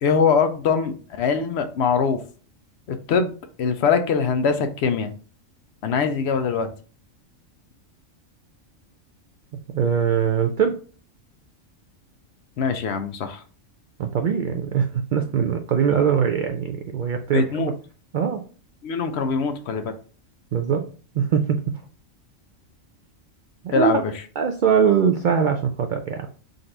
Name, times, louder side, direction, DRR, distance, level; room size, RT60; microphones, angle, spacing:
voice 1, 0.0-2.2 2.9-3.3 3.6-5.1 5.8-6.7 12.6-13.4 17.3-17.7 18.8-19.9 23.7-24.1, left 6 dB, 65° left, 8 dB, 0.8 m, -22 dB
voice 2, 9.7-10.8 14.0-17.7 18.1-18.4 20.5-20.8 21.1-21.6 23.6-24.0 24.4-26.3, right 7 dB, 85° right, 5 dB, 0.4 m, -22 dB
3.9 x 2.6 x 4.4 m, 0.39 s
omnidirectional pair, 1.4 m